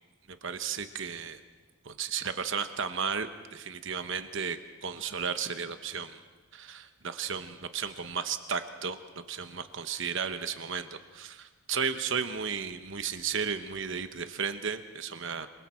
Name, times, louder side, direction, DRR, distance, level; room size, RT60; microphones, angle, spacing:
voice 1, 0.3-1.4 1.8-6.2 6.5-9.0 9.3-15.5, right 6 dB, 55° right, 9 dB, 1.1 m, -34 dB
28.0 x 23.0 x 4.5 m, 1.2 s
head